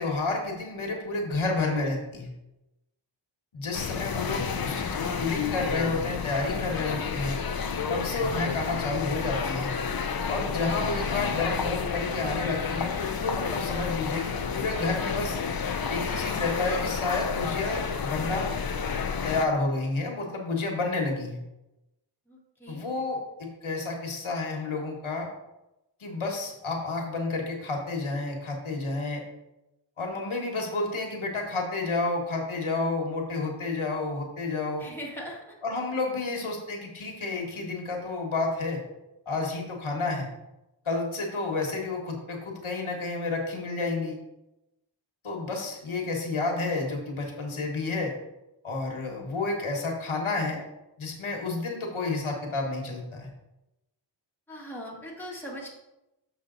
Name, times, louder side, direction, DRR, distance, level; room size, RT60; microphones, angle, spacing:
voice 1, 0.0-2.3 3.5-7.4 7.9-9.7 10.3-15.4 15.9-18.5 19.2-21.4 22.7-25.3 26.0-29.2 30.0-34.9 35.6-38.8 39.2-40.3 40.8-44.2 45.2-48.1 48.6-50.6 51.0-53.3, left 3 dB, 80° left, 0 dB, 1.6 m, -30 dB
sound 1, 3.7-19.5, left 6 dB, 50° left, 0.6 m, -30 dB
voice 2, 22.3-22.9 34.8-35.6 54.5-55.7, equal, 5° left, -4 dB, 1.8 m, -40 dB
6.9 x 5.6 x 3.9 m, 0.94 s
wide cardioid pair, 100°, 48 cm